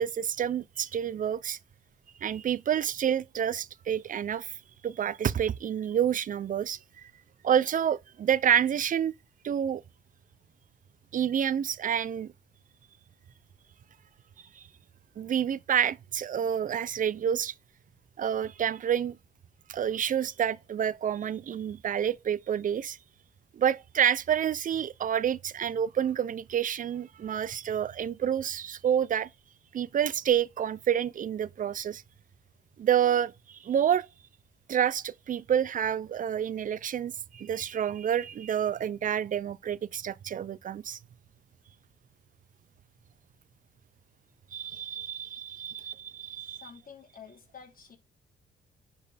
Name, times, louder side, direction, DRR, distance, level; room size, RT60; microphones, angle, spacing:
voice 1, 0.0-1.6 2.2-4.5 4.8-7.1 7.4-9.1 9.4-9.8 11.1-12.3 14.6-14.7 15.2-17.5 18.2-19.2 19.7-23.0 23.5-29.3 29.7-32.0 32.8-34.1 34.7-41.0 44.5-46.6, right 9 dB, 40° right, 0.5 m, -28 dB
voice 2, 46.4-48.0, left 7 dB, 45° left, 3.0 m, -50 dB
10.0 x 4.4 x 3.3 m
cardioid pair, 90°, 20 cm